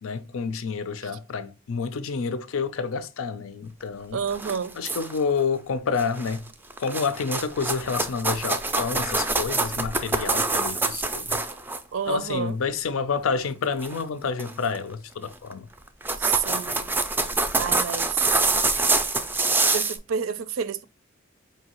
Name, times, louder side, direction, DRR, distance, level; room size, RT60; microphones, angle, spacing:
voice 1, 0.0-4.2 4.8-6.5 6.8-11.4 12.1-15.7, left 5 dB, 90° left, 0.5 m, -29 dB
voice 2, 4.1-4.8 11.9-12.6 16.2-16.9 17.6-18.3 19.7-20.8, right 7 dB, 70° right, 0.4 m, -29 dB
sound 1, 4.3-5.3 6.0-6.4 6.7-11.8 13.8-14.0 14.4-14.8 15.5-15.6 15.9-20.0, right 3 dB, 10° right, 0.3 m, -25 dB
4.7 x 2.8 x 2.9 m
head